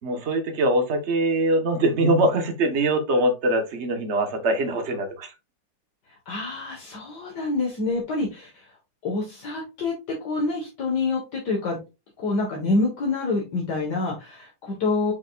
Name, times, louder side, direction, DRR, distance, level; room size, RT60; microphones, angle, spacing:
voice 1, 0.0-5.3, right 1 dB, 40° right, 6 dB, 1.3 m, -23 dB
voice 2, 6.3-8.7 9.0-9.9 10.2-11.8 12.2-15.1, left 3 dB, 65° left, -2 dB, 2.1 m, -27 dB
6.8 x 5.8 x 2.4 m, 0.26 s
omnidirectional pair, 2.0 m